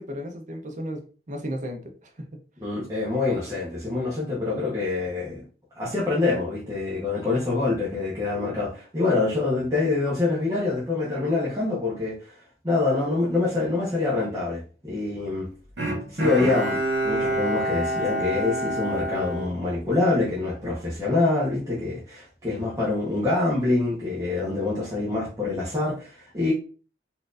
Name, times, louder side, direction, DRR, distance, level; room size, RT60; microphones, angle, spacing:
voice 1, 0.0-2.4, equal, 45° right, 0.7 m, -35 dB
voice 2, 2.6-5.4 5.7-15.5 16.1-26.5, left 3 dB, 20° right, 1.0 m, -25 dB
Bowed string instrument, 15.8-20.3 20.7-20.8, right 1 dB, 70° right, 1.6 m, -28 dB
4.2 x 2.6 x 2.4 m
head